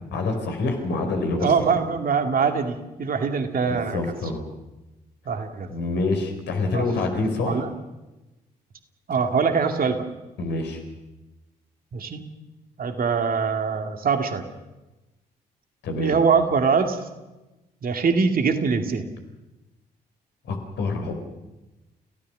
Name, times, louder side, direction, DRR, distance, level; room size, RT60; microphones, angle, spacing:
voice 1, 0.1-1.8 3.7-4.4 5.7-7.7 10.4-10.8 15.8-16.1 20.4-21.1, left 3 dB, 55° left, 5 dB, 4.8 m, -26 dB
voice 2, 1.4-4.0 5.3-5.7 6.7-6.8 7.5-7.7 9.1-10.1 11.9-12.2 12.8-14.4 16.0-17.0 17.8-19.1, right 5 dB, 45° right, 6 dB, 2.4 m, -23 dB
29.0 x 17.0 x 6.3 m, 1.0 s
figure-of-eight pair, 40°, 21 cm